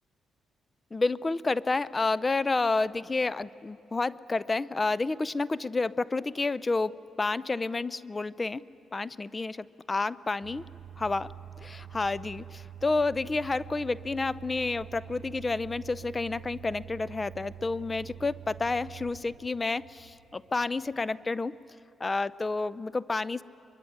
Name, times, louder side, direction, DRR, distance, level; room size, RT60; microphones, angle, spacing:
voice 1, 0.9-8.6 8.9-10.6 11.0-11.3 11.6-21.6 22.0-23.4, left 3 dB, 30° left, 19 dB, 0.6 m, -30 dB
sound 1, 10.4-21.1, right 10 dB, 85° right, 0.8 m, -46 dB
23.5 x 23.5 x 9.9 m, 3.0 s
cardioid pair, 80°, 0 cm